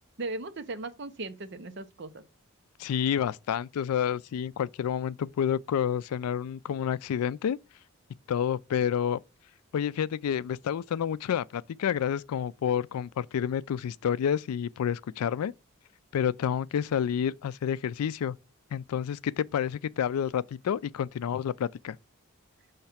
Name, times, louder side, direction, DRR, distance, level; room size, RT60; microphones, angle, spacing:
voice 1, 0.2-2.2, right 2 dB, 50° right, 0.7 m, -37 dB
voice 2, 2.8-7.6 8.3-9.2 9.7-15.5 16.1-18.4 18.7-22.0, left 8 dB, 90° left, 0.3 m, -29 dB
5.7 x 3.2 x 5.7 m
head